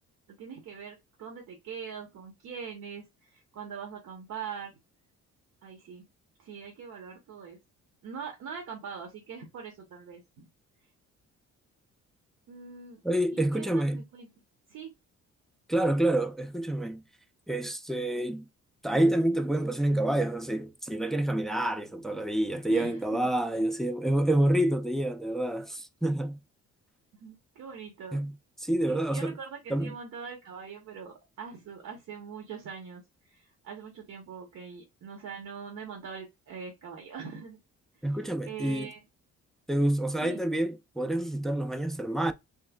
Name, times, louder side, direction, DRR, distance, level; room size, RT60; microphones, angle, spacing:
voice 1, 0.4-4.8 5.6-6.0 6.4-7.6 8.0-10.5 12.5-13.0 13.3-14.3 14.7-14.9 22.7-23.6 27.2-28.2 28.8-37.6 38.2-39.0 40.2-40.4, right 6 dB, 70° right, 0.9 m, -42 dB
voice 2, 13.0-14.1 15.7-17.0 17.5-18.5 18.8-26.4 28.1-29.4 29.7-29.9 38.0-38.9 39.7-42.3, right 1 dB, ahead, 0.4 m, -28 dB
3.1 x 2.9 x 2.2 m
cardioid pair, 90°, 30 cm